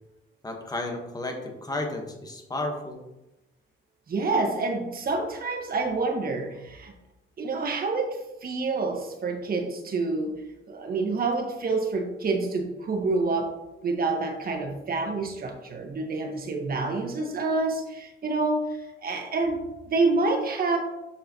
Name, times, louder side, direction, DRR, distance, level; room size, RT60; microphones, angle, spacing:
voice 1, 0.4-3.0, left 2 dB, 20° left, 3 dB, 1.5 m, -32 dB
voice 2, 4.1-6.9 7.4-10.4 10.7-13.5 13.8-20.8, right 3 dB, 50° right, 3 dB, 1.5 m, -27 dB
7.2 x 6.5 x 3.1 m, 0.96 s
cardioid pair, 90°, 20 cm